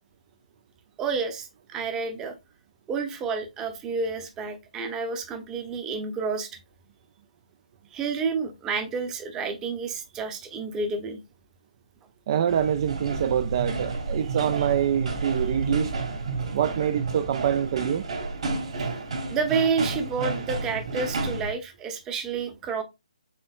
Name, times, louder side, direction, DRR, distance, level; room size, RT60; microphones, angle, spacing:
voice 1, 1.0-2.3 2.9-6.5 7.9-11.2 18.6-18.7 19.3-22.8, right 5 dB, 15° right, 0.8 m, -29 dB
voice 2, 12.3-16.0 16.5-18.0, right 9 dB, 35° right, 0.3 m, -25 dB
sound 1, 12.5-21.5, right 3 dB, 60° right, 2.4 m, -31 dB
6.7 x 3.4 x 2.3 m
figure-of-eight pair, 140°, 4 cm